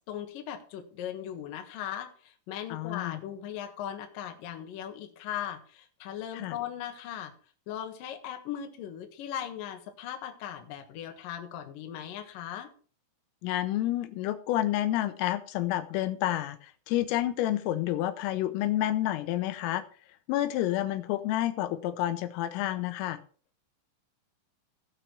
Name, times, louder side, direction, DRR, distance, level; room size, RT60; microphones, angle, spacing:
voice 1, 0.1-7.3 7.7-12.7, left 10 dB, 65° left, 5 dB, 2.3 m, -38 dB
voice 2, 2.7-3.2 6.3-6.6 13.4-19.8 20.3-23.2, left 14 dB, 90° left, 11 dB, 3.4 m, -29 dB
17.0 x 6.1 x 4.6 m, 0.42 s
omnidirectional pair, 5.9 m